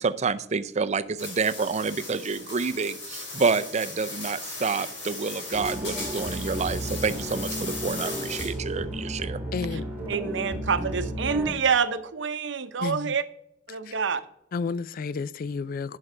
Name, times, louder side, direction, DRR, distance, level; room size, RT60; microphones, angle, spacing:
voice 1, 0.0-9.4, right 4 dB, 35° right, 0.5 m, -28 dB
sound 1, 1.2-8.7, left 2 dB, 70° left, 3.9 m, -38 dB
sound 2, 5.5-11.5, right 1 dB, 10° right, 1.9 m, -33 dB
voice 2, 9.5-9.9 12.8-13.2 13.7-13.9 14.5-16.0, left 4 dB, 50° left, 0.3 m, -31 dB
voice 3, 10.1-13.2 13.7-14.2, right 6 dB, 70° right, 0.7 m, -27 dB
11.0 x 5.8 x 5.0 m
head